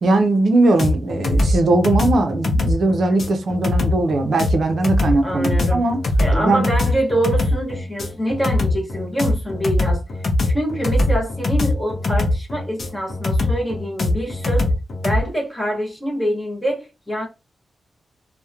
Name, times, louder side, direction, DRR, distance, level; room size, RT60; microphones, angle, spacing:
voice 1, 0.0-6.0 6.3-6.6, right 2 dB, 55° right, 0.5 m, -19 dB
sound 1, 0.8-15.2, left 2 dB, 50° left, 0.6 m, -21 dB
voice 2, 5.0-5.8 6.2-10.0 10.4-14.7 15.0-17.3, right 1 dB, 10° left, 0.8 m, -25 dB
2.8 x 2.1 x 2.3 m
wide cardioid pair, 160°, 0 cm